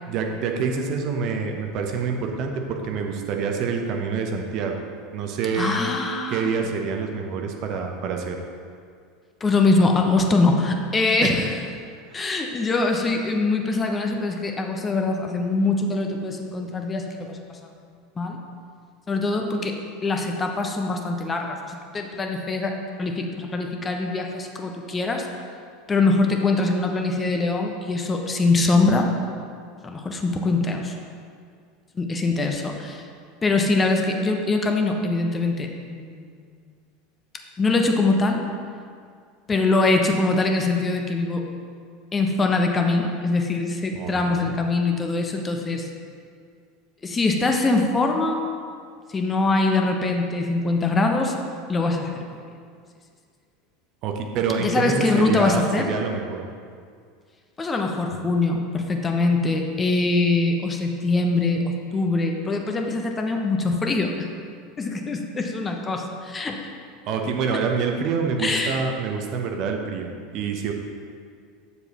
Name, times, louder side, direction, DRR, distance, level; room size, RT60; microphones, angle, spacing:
voice 1, 0.1-4.8 5.1-5.8 6.3-8.4 11.2-11.3 12.1-12.2 43.9-44.6 54.0-56.4 67.1-70.7, right 5 dB, 45° right, 3 dB, 0.7 m, -26 dB
voice 2, 5.5-6.5 9.4-11.6 12.1-17.6 18.2-18.4 19.1-19.7 20.0-22.7 23.0-25.3 25.9-29.0 29.8-30.9 31.9-33.1 33.4-36.3 37.6-38.4 39.5-41.4 42.1-45.9 47.0-48.4 49.1-51.4 51.7-52.4 54.6-55.9 57.6-64.3 64.8-66.6 68.4-68.8, left 3 dB, 20° left, 3 dB, 0.8 m, -23 dB
8.0 x 7.0 x 2.9 m, 2.1 s
figure-of-eight pair, 75°, 0 cm